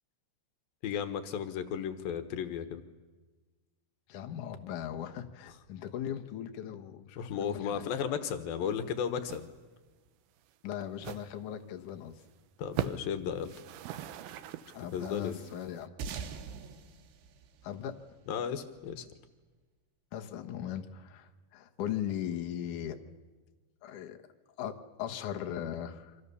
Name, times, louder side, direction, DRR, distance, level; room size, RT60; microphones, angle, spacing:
voice 1, 0.8-2.8 7.2-9.5 12.6-13.6 14.9-15.4 18.3-19.1, left 8 dB, 70° left, 9 dB, 2.4 m, -34 dB
voice 2, 4.1-7.9 10.6-12.2 14.7-15.9 17.6-18.0 20.1-23.0 23.8-24.2 24.6-26.2, left 10 dB, 90° left, 5 dB, 1.7 m, -38 dB
sound 1, 8.7-8.9 9.2-9.5 9.7-9.9 10.4-10.5 11.0-11.3 11.7-11.8 12.1-12.3 12.6-13.1 13.4-15.9, right 10 dB, 85° right, 2.2 m, -40 dB
sound 2, 16.0-18.8, right 5 dB, 65° right, 3.1 m, -43 dB
29.0 x 25.5 x 7.0 m, 1.3 s
omnidirectional pair, 5.7 m